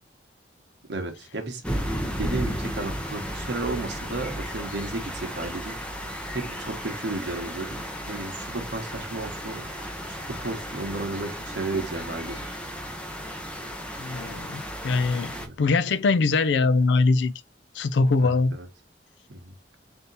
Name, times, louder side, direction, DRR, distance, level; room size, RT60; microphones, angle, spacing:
voice 1, 0.9-1.6 2.2-5.8 6.3-12.5 15.3-15.7 18.2-18.7 19.3-19.5, right 2 dB, 80° right, 1.0 m, -33 dB
sound 1, 1.6-15.5, equal, 5° left, 0.6 m, -34 dB
voice 2, 14.0-17.3 17.7-18.5, left 3 dB, 80° left, 0.4 m, -22 dB
3.6 x 2.8 x 4.0 m
head